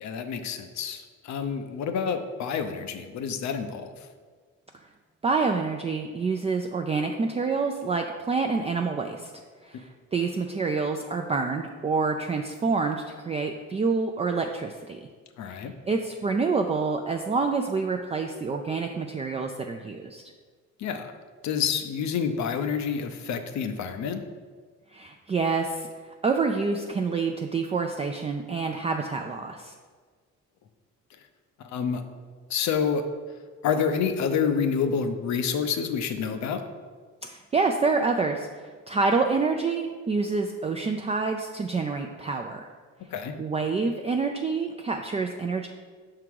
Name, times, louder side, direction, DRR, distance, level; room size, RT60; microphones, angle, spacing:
voice 1, 0.0-3.9 15.4-15.7 20.8-21.1 21.4-24.2 31.6-32.0 32.5-33.0 33.6-36.6 43.1-43.3, left 6 dB, 70° left, 8 dB, 0.6 m, -28 dB
voice 2, 5.2-9.3 9.6-15.1 15.5-15.6 15.9-20.2 24.9-25.9 26.2-29.7 37.2-42.7 43.4-45.7, right 4 dB, 20° right, 3 dB, 0.3 m, -27 dB
5.8 x 3.7 x 4.7 m, 1.5 s
cardioid pair, 90°, 30 cm